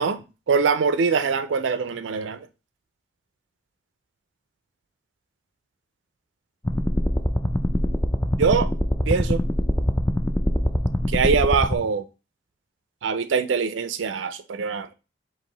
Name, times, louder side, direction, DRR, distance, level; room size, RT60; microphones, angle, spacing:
voice 1, 0.0-2.5 8.4-8.7 9.1-9.4 11.1-12.0 13.0-14.9, right 5 dB, 80° right, 0.4 m, -23 dB
sound 1, 6.6-11.7, left 1 dB, 10° left, 0.3 m, -23 dB
4.6 x 2.9 x 3.9 m
head